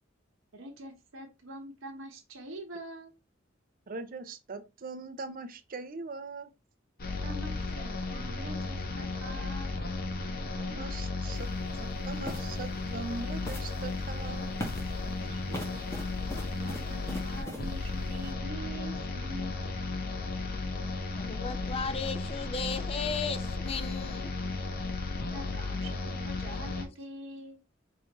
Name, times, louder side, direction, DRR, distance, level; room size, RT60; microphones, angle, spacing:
voice 1, 0.5-3.2 7.2-9.8 15.2-16.0 16.6-19.6 25.3-27.6, right 1 dB, 85° right, 1.1 m, -45 dB
voice 2, 3.9-6.5 10.6-11.5 11.8-14.9, right 3 dB, 45° right, 0.5 m, -41 dB
sound 1, 7.0-26.8, left 3 dB, 50° left, 0.7 m, -34 dB
sound 2, 11.3-11.5 12.2-12.6 13.4-13.9 14.6-15.0 15.5-17.7, equal, 15° left, 0.8 m, -40 dB
voice 3, 21.1-24.3, left 5 dB, 30° left, 0.4 m, -35 dB
4.9 x 2.5 x 3.0 m
head